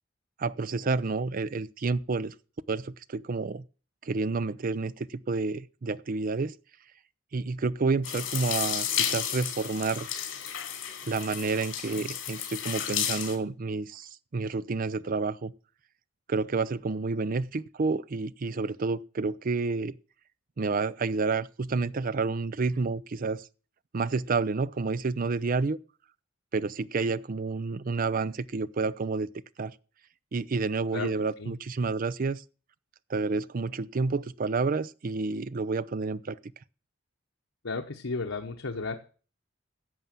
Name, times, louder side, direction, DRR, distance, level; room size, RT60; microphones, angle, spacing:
voice 1, 0.4-2.3 2.7-3.6 4.0-6.5 7.3-10.1 11.0-15.5 16.3-19.9 20.6-23.5 23.9-25.8 26.5-29.3 29.6-29.7 30.3-32.4 33.1-36.4, right 4 dB, 45° right, 0.5 m, -29 dB
sound 1, 8.0-13.4, left 9 dB, 70° left, 3.0 m, -32 dB
voice 2, 37.6-39.0, left 3 dB, 90° left, 1.0 m, -33 dB
11.0 x 7.1 x 7.5 m
head